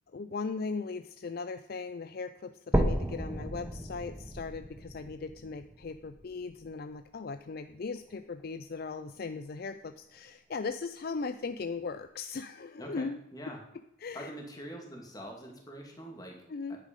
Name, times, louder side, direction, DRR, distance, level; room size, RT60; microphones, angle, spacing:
voice 1, 0.1-13.2 14.0-14.3 16.5-16.8, left 4 dB, 50° left, 10 dB, 0.4 m, -38 dB
sound 1, 2.7-6.7 7.3-7.4 8.0-8.1 8.4-8.5 9.3-9.4, equal, 10° right, 1.1 m, -33 dB
voice 2, 12.8-13.6 14.1-16.4 16.7-16.8, equal, 20° left, 1 dB, 2.3 m, -44 dB
10.0 x 8.3 x 5.3 m, 0.80 s
head